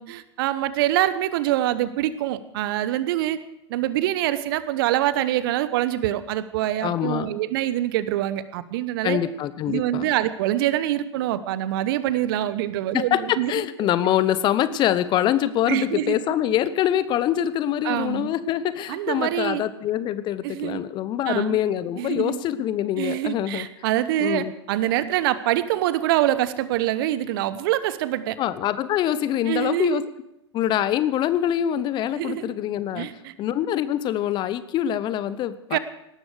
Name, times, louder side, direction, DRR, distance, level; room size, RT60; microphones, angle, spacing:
voice 1, 0.0-3.4 3.7-9.2 9.7-13.5 15.7-16.2 17.8-18.3 18.9-19.6 20.4-20.8 21.3-21.6 22.0-22.4 23.0-28.4 29.5-30.0 32.1-32.5 33.0-33.3 35.7-35.8, right 13 dB, 50° right, 15 dB, 1.0 m, -25 dB
voice 2, 6.8-7.3 9.0-10.1 12.9-23.7 24.2-24.5 28.4-30.0 30.5-33.1 33.4-35.8, left 11 dB, 30° left, 15 dB, 0.8 m, -24 dB
18.0 x 12.5 x 4.9 m, 0.82 s
figure-of-eight pair, 100°, 15 cm